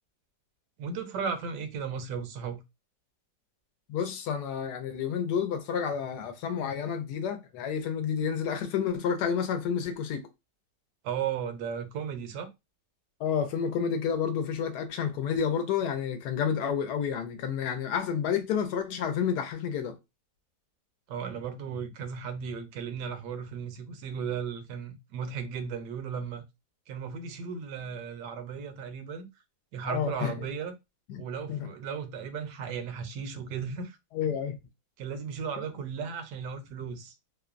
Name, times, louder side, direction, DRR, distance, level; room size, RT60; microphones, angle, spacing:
voice 1, 0.8-2.6 11.0-12.5 21.1-26.4 26.9-29.3 29.7-30.7 31.2-34.0 35.0-37.1, right 6 dB, 75° right, 1.2 m, -35 dB
voice 2, 3.9-10.3 13.2-20.0 29.8-30.3 31.1-31.2 31.5-31.7 34.1-34.6, left 7 dB, 75° left, 1.1 m, -30 dB
3.0 x 2.1 x 2.3 m
omnidirectional pair, 1.9 m